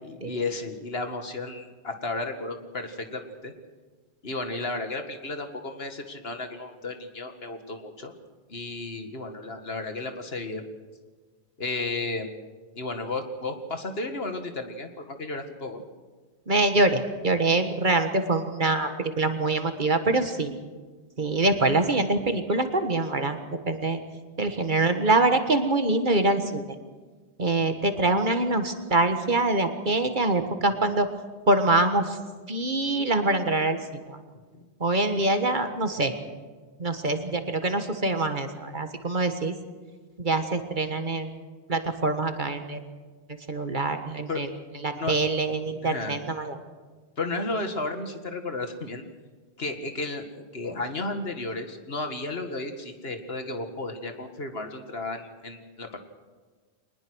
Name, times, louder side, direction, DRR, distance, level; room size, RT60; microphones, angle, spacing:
voice 1, 0.0-3.5 4.2-8.1 8.5-10.7 11.6-12.3 12.8-15.8 34.5-34.6 44.3-44.4 44.9-45.1 45.8-46.1 47.2-49.0 49.6-56.0, left 2 dB, 65° left, 6 dB, 2.1 m, -33 dB
voice 2, 16.5-20.5 21.2-23.4 23.7-24.0 24.4-26.6 27.4-31.1 31.5-32.2 32.5-33.8 34.1-34.2 34.8-36.1 36.8-39.5 40.2-41.3 41.7-42.8 43.3-44.5 44.8-46.6, right 2 dB, 50° right, 7 dB, 1.8 m, -24 dB
23.5 x 20.0 x 6.3 m, 1.4 s
omnidirectional pair, 1.1 m